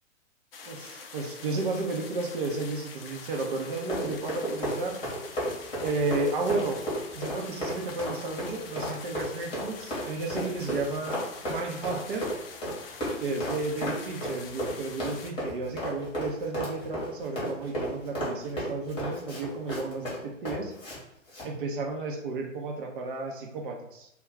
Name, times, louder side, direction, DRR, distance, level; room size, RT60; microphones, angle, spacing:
sound 1, 0.5-15.3, left 5 dB, 50° left, 0.5 m, -45 dB
voice 1, 0.7-5.0 5.8-6.8 7.1-11.2 11.4-12.3 13.2-20.7 21.4-24.1, right 3 dB, 45° right, 2 dB, 0.6 m, -33 dB
Run, 3.6-21.0 21.3-21.5, equal, 15° left, 0.9 m, -34 dB
2.3 x 2.2 x 3.5 m, 0.78 s
figure-of-eight pair, 115°, 38 cm